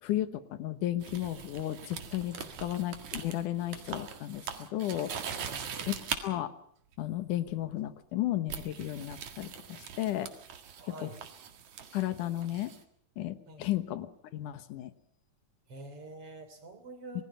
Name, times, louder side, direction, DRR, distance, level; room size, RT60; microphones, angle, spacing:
voice 1, 0.0-2.4 2.6-5.2 5.9-6.0 6.2-6.5 7.0-10.3 11.0-11.1 11.9-12.7 13.2-14.9, left 13 dB, 85° left, 12 dB, 2.7 m, -34 dB
sound 1, 1.0-6.2 7.5-7.7 8.5-12.8, right 7 dB, 70° right, 3.2 m, -42 dB
voice 2, 5.3-5.9 10.8-11.2 13.5-13.7 15.7-17.2, right 2 dB, 45° right, 9 dB, 3.9 m, -46 dB
27.0 x 20.5 x 5.7 m, 0.67 s
omnidirectional pair, 3.6 m